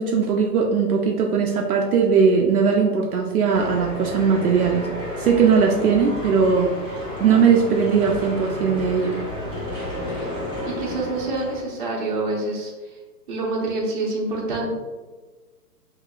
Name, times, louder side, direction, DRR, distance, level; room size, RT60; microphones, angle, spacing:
voice 1, 0.0-4.9 5.2-6.7 7.2-9.2, right 6 dB, 65° right, 0 dB, 0.6 m, -19 dB
sound 1, 3.5-11.6, equal, 5° left, 0.7 m, -31 dB
voice 2, 10.6-13.0 13.3-14.8, right 2 dB, 30° right, -4 dB, 0.9 m, -27 dB
5.5 x 2.8 x 2.4 m, 1.3 s
hypercardioid pair, 170°, 48 cm